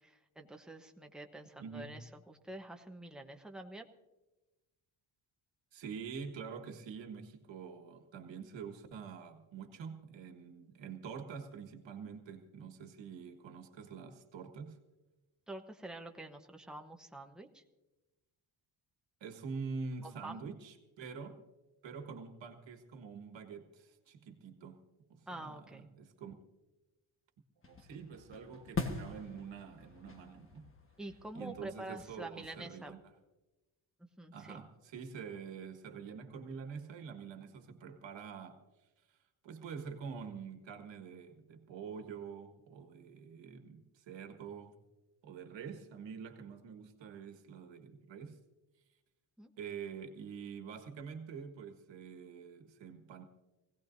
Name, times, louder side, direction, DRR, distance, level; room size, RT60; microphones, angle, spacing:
voice 1, 0.0-3.9 15.5-17.6 20.0-20.4 25.3-25.9 31.0-33.0 34.0-34.6 49.4-49.5, right 1 dB, ahead, 3 dB, 0.9 m, -47 dB
voice 2, 1.6-2.0 5.7-14.8 19.2-21.4 21.8-24.8 25.1-26.3 27.7-30.7 31.3-33.0 34.3-38.6 39.1-39.2 39.4-44.7 45.2-48.4 49.6-53.2, right 6 dB, 65° right, 6 dB, 1.6 m, -46 dB
sound 1, 27.6-32.9, left 4 dB, 25° left, 1.3 m, -44 dB
24.0 x 17.0 x 2.6 m, 1.1 s
cardioid pair, 150°, 48 cm